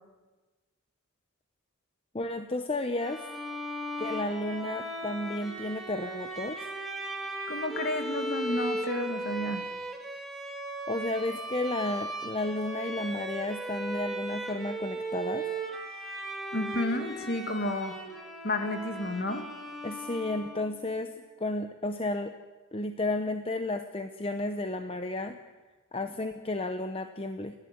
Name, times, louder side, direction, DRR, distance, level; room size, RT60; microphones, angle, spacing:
voice 1, 2.1-3.2 4.0-6.6 10.9-15.4 19.8-21.1 21.4-22.3 22.7-25.4 25.9-27.5, left 2 dB, 25° left, 7 dB, 0.8 m, -32 dB
Bowed string instrument, 3.0-20.8, right 1 dB, ahead, 2.8 m, -37 dB
voice 2, 7.5-9.6 16.5-17.9 18.4-19.4, left 1 dB, 50° left, 6 dB, 2.3 m, -31 dB
29.5 x 11.5 x 9.4 m, 1.3 s
head